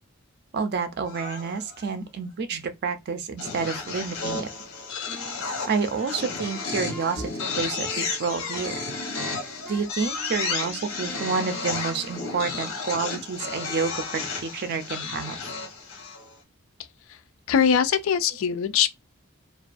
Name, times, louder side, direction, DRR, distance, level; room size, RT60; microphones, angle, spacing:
voice 1, 0.5-4.5 5.7-7.3 7.6-8.8 9.7-15.4, right 5 dB, 50° right, 0.4 m, -29 dB
sound 1, 1.1-1.8 3.4-16.3, left 4 dB, 90° left, 0.8 m, -33 dB
Wind instrument woodwind instrument, 5.1-9.8 10.2-12.8, right 1 dB, 5° left, 0.5 m, -45 dB
voice 2, 17.5-18.9, left 7 dB, 70° left, 0.3 m, -22 dB
2.3 x 2.3 x 2.4 m
head